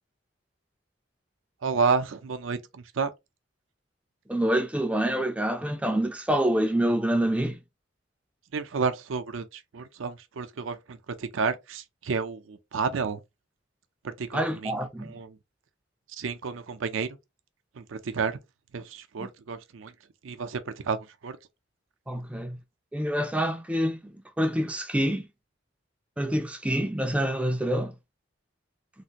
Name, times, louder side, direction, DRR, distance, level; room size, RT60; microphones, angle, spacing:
voice 1, 1.6-3.1 8.5-13.2 14.0-14.7 15.0-15.3 16.2-17.1 17.8-18.4 18.7-19.9 20.2-21.0 21.2-21.3, right 5 dB, 80° right, 0.5 m, -30 dB
voice 2, 4.3-7.6 14.3-15.2 19.2-19.3 22.1-22.6 22.9-25.3 26.2-27.9, right 1 dB, 5° right, 0.4 m, -27 dB
3.3 x 2.5 x 2.8 m
head